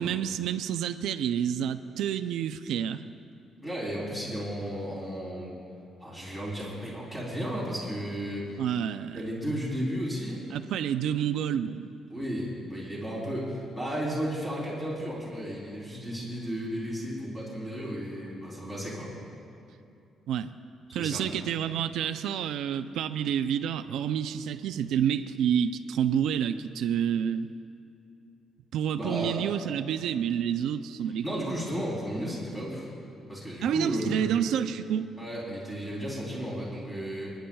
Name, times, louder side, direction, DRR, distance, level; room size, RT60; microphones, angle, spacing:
voice 1, 0.0-3.0 8.6-9.2 10.5-11.9 20.3-20.5 20.9-27.5 28.7-31.5 33.6-35.1, right 9 dB, 85° right, 9 dB, 0.4 m, -29 dB
voice 2, 3.6-5.5 6.0-8.6 9.1-10.4 12.1-19.1 20.9-21.3 28.9-29.4 31.2-32.9 33.3-34.3 35.2-37.3, equal, 5° left, -6 dB, 3.3 m, -34 dB
29.0 x 10.0 x 2.3 m, 2.6 s
cardioid pair, 165°, 0 cm